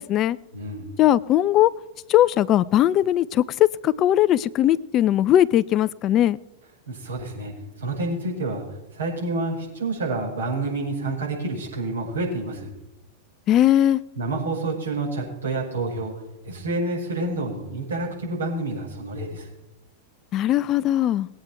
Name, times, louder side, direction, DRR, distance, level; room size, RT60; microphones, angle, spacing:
voice 1, 0.0-0.4 1.0-1.7 2.1-6.4 13.5-14.0 20.3-21.3, left 12 dB, 35° left, 18 dB, 0.5 m, -19 dB
voice 2, 0.5-0.9 6.9-7.5 7.8-8.6 8.9-12.7 14.2-16.1 16.4-19.5, right 2 dB, 85° right, -4 dB, 6.1 m, -28 dB
20.0 x 9.0 x 4.5 m, 0.93 s
figure-of-eight pair, 95°, 0 cm